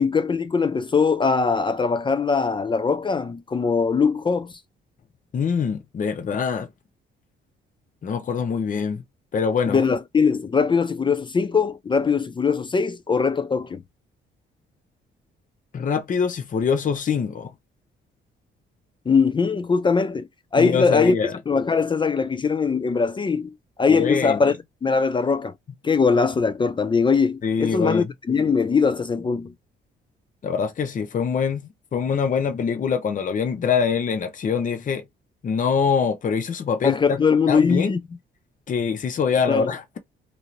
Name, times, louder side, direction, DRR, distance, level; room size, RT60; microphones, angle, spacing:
voice 1, 0.0-4.5 9.7-13.8 19.1-20.3 20.5-21.1 21.5-24.5 24.8-25.5 25.8-29.5 36.8-38.0 39.5-39.7, left 5 dB, 25° left, 0.3 m, -21 dB
voice 2, 5.3-6.7 8.0-9.0 9.3-9.8 15.7-17.5 20.6-21.4 23.9-24.4 27.4-28.1 30.4-35.0 35.4-37.2 37.5-37.9 38.7-40.0, left 6 dB, 40° left, 0.7 m, -24 dB
2.7 x 2.6 x 3.0 m
cardioid pair, 90°, 20 cm